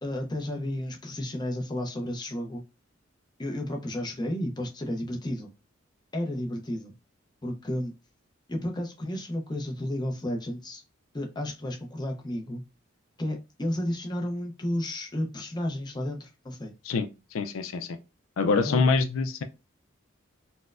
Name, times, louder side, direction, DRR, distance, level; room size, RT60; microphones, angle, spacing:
voice 1, 0.0-2.6 3.4-5.5 6.1-6.9 7.4-7.9 8.5-10.8 11.1-12.6 13.2-16.7 18.6-18.8, left 1 dB, 20° left, 0.6 m, -32 dB
voice 2, 16.9-17.9 18.4-19.4, left 4 dB, 85° left, 0.4 m, -25 dB
4.2 x 2.1 x 2.4 m
head